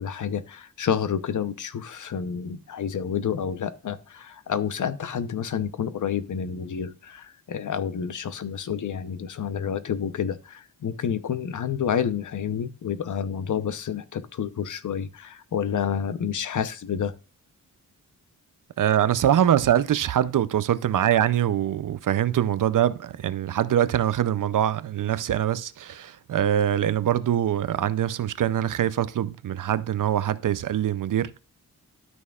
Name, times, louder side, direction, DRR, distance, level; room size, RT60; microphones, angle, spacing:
voice 1, 0.0-17.1, left 8 dB, 60° left, 0.8 m, -29 dB
voice 2, 18.8-31.4, right 10 dB, 60° right, 0.6 m, -23 dB
12.5 x 6.2 x 2.4 m
wide cardioid pair, 145°, 35 cm